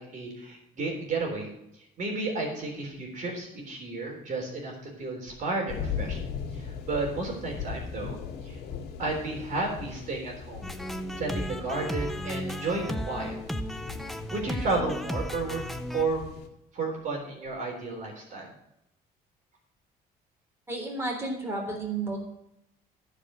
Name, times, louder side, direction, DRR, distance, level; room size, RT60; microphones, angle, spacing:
voice 1, 0.0-1.5 2.0-6.2 6.5-8.6 9.0-10.7 11.2-13.4 14.3-15.6 15.9-16.2 16.7-18.5, right 3 dB, 50° right, 1 dB, 3.6 m, -32 dB
sound 1, 5.7-16.5, left 6 dB, 80° left, 2.1 m, -39 dB
sound 2, 10.6-16.0, equal, ahead, 0.7 m, -34 dB
voice 2, 20.7-22.2, right 2 dB, 15° right, -1 dB, 3.6 m, -32 dB
15.0 x 5.0 x 6.2 m, 0.81 s
cardioid pair, 110°, 17 cm